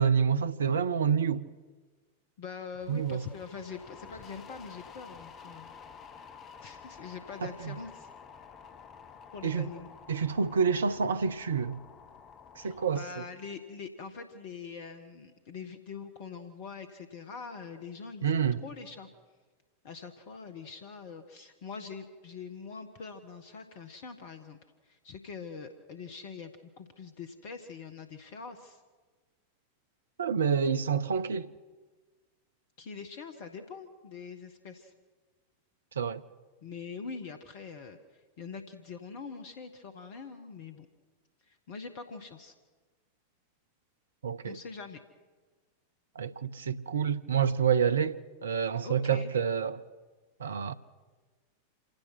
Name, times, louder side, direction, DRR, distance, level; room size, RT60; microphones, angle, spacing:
voice 1, 0.0-1.4 2.9-3.2 7.6-7.8 9.4-9.7 10.1-11.8 12.6-13.0 18.2-18.6 30.2-31.5 36.0-36.2 44.2-44.6 46.2-48.2 48.4-49.8 50.4-50.7, right 7 dB, 70° right, 0.7 m, -28 dB
voice 2, 2.4-5.7 6.1-6.2 6.6-8.1 9.3-9.9 12.6-19.1 19.8-24.6 24.8-28.8 32.8-34.9 36.6-40.9 41.5-42.5 44.4-45.0 48.8-49.3, left 5 dB, 50° left, 1.5 m, -44 dB
sound 1, 2.8-13.0, left 6 dB, 30° left, 1.2 m, -51 dB
26.5 x 17.0 x 6.2 m
figure-of-eight pair, 90°, 0 cm